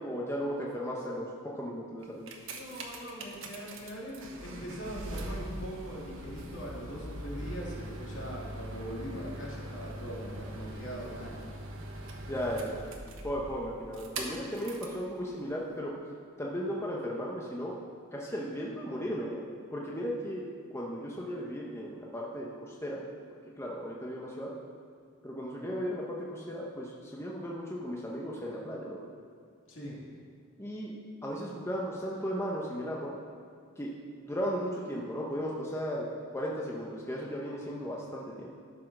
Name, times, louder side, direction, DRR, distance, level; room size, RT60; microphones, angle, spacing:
voice 1, 0.0-2.3 12.3-12.8 13.2-15.9 16.4-17.7 18.1-19.4 19.7-20.4 20.7-23.0 23.6-24.5 25.2-29.0 30.6-30.9 31.2-33.1 33.8-33.9 34.2-36.1 36.3-38.5, equal, 15° left, -4 dB, 1.0 m, -36 dB
sound 1, 2.0-15.0 15.7-15.8, right 1 dB, 65° right, 1.2 m, -42 dB
voice 2, 2.5-11.4 29.7-30.0, equal, 65° left, -4 dB, 2.7 m, -41 dB
13.0 x 5.7 x 6.2 m, 2.2 s
head